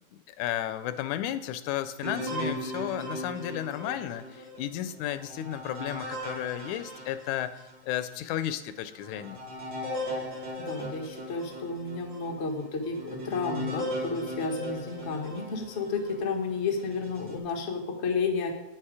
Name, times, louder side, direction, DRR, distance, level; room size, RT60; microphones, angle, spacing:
voice 1, 0.3-7.6 7.8-9.4, left 12 dB, 90° left, 13 dB, 2.1 m, -33 dB
sound 1, 2.0-7.8 8.3-8.4 9.0-16.2 16.8-17.4, equal, 40° right, 3.2 m, -38 dB
voice 2, 10.6-18.5, left 4 dB, 45° left, 2 dB, 0.9 m, -32 dB
9.0 x 8.9 x 4.9 m, 0.97 s
omnidirectional pair, 3.3 m